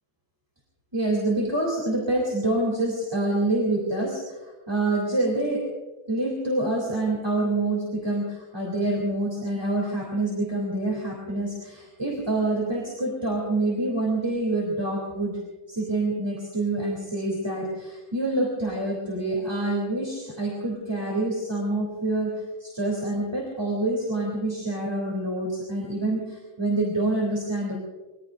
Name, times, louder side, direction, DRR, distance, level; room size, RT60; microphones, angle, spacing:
voice 1, 0.9-5.7 6.1-15.4 15.7-27.7, right 2 dB, 10° right, -2 dB, 3.0 m, -26 dB
25.5 x 22.0 x 2.6 m, 1.3 s
omnidirectional pair, 2.2 m